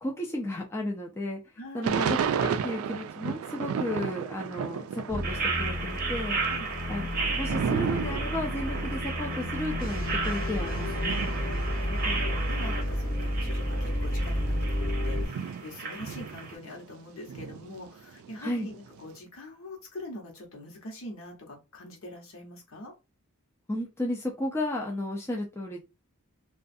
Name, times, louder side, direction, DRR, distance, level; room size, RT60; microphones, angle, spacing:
voice 1, 0.0-1.4 1.7-6.4 6.9-7.1 7.3-11.2 18.4-18.7 23.7-25.8, left 1 dB, 10° left, -1 dB, 0.4 m, -33 dB
voice 2, 1.6-2.0 6.5-6.7 11.2-11.3 11.8-22.9, left 1 dB, 65° left, 0 dB, 1.0 m, -43 dB
Thunder / Rain, 1.8-5.5 5.8-12.8 13.4-13.5 13.7-16.9 17.3-19.0, right 7 dB, 70° right, 0.3 m, -34 dB
sound 1, 5.1-15.3, left 1 dB, 40° left, 0.8 m, -31 dB
sound 2, 5.2-16.5, right 4 dB, 40° right, 0.7 m, -35 dB
2.5 x 2.3 x 2.5 m, 0.27 s
head